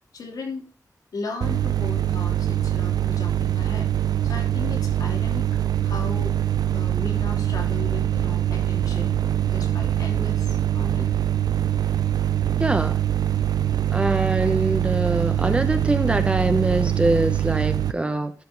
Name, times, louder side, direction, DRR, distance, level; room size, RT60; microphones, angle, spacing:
voice 1, 0.1-0.7 1.1-3.9 4.2-5.5 5.8-6.4 6.7-11.1, left 3 dB, 75° left, 1 dB, 3.0 m, -36 dB
sound 1, 1.4-17.9, right 11 dB, 90° right, 0.6 m, -23 dB
voice 2, 12.6-13.0 13.9-18.3, right 2 dB, 15° right, 8 dB, 0.9 m, -23 dB
12.0 x 5.3 x 5.2 m, 0.38 s
wide cardioid pair, 145°, 7 cm